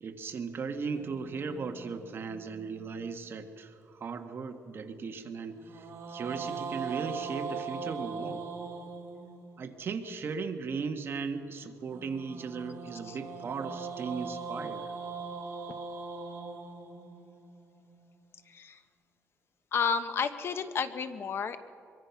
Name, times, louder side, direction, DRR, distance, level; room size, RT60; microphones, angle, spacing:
voice 1, 0.0-8.5 9.6-14.9, right 5 dB, 45° right, 6 dB, 1.6 m, -37 dB
sound 1, 0.9-3.3 5.6-9.7 11.9-18.1, right 5 dB, 60° right, 4.4 m, -40 dB
voice 2, 18.5-18.8 19.7-21.6, left 6 dB, 50° left, 10 dB, 1.2 m, -31 dB
24.0 x 23.5 x 5.9 m, 2.3 s
cardioid pair, 130°, 5 cm